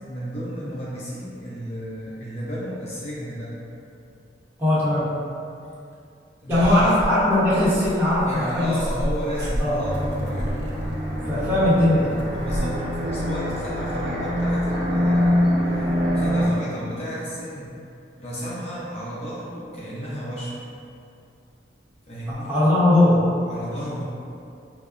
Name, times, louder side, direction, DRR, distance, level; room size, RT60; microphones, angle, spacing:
voice 1, 0.0-3.5 6.4-6.9 8.2-10.8 11.2-11.6 12.4-15.8 16.1-17.8 18.2-20.6 22.1-22.5 23.5-24.0, equal, 35° left, -7 dB, 0.5 m, -33 dB
voice 2, 4.6-5.1 6.5-8.7 9.6-9.8 10.2-10.5 11.2-12.2 22.5-23.2, left 1 dB, 15° right, -12 dB, 0.9 m, -19 dB
Purr / Meow, 6.5-12.6, equal, 70° right, 0.4 m, -33 dB
sound 1, 9.8-16.5, equal, 50° right, 0.9 m, -24 dB
4.6 x 2.0 x 2.4 m, 2.5 s
head